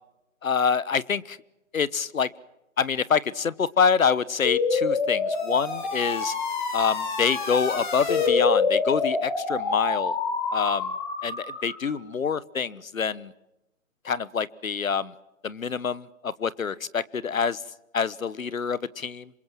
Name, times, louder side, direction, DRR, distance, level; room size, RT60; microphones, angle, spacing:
voice 1, 0.4-1.4 1.7-2.3 2.8-6.3 6.7-10.2 10.5-10.9 11.2-13.3 14.0-15.1 15.4-17.6 17.9-19.3, left 6 dB, 80° left, 20 dB, 1.3 m, -26 dB
sound 1, 4.4-11.9, left 4 dB, 35° left, 4.8 m, -26 dB
27.0 x 23.5 x 7.5 m, 0.93 s
hypercardioid pair, 165°, 40 cm